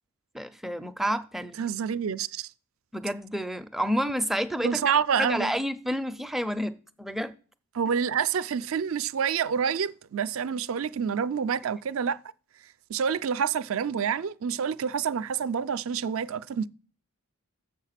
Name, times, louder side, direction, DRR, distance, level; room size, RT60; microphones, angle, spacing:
voice 1, 0.3-1.6 2.9-4.8 5.2-6.7 7.0-7.3, equal, ahead, 0.4 m, -29 dB
voice 2, 1.6-2.5 4.6-5.6 7.7-12.2 12.9-16.7, right 7 dB, 65° right, 0.4 m, -28 dB
7.2 x 6.5 x 5.8 m
head